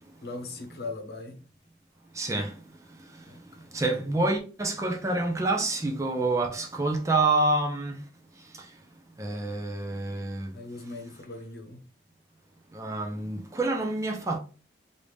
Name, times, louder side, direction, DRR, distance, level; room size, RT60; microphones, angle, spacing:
voice 1, 0.2-1.4 3.3-4.2 10.5-11.8, left 2 dB, 60° left, 0.9 m, -40 dB
voice 2, 2.2-2.5 3.7-7.9 9.2-10.5 12.7-14.4, right 2 dB, 15° right, 0.5 m, -27 dB
3.3 x 2.6 x 3.1 m
head